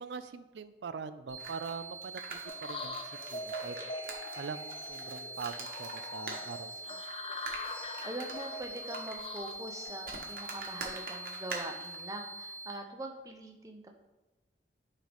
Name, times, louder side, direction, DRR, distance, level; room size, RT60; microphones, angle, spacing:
voice 1, 0.0-3.8 4.4-7.1, right 5 dB, 80° right, 13 dB, 0.4 m, -43 dB
sound 1, 1.3-12.7, right 2 dB, 65° left, 1.9 m, -45 dB
sound 2, 1.4-12.0, right 3 dB, 50° right, 1.1 m, -45 dB
sound 3, 2.5-10.9, left 2 dB, 30° left, 0.4 m, -43 dB
voice 2, 8.0-14.0, right 1 dB, 20° right, 3 dB, 0.6 m, -43 dB
8.8 x 3.9 x 3.5 m, 1.1 s
head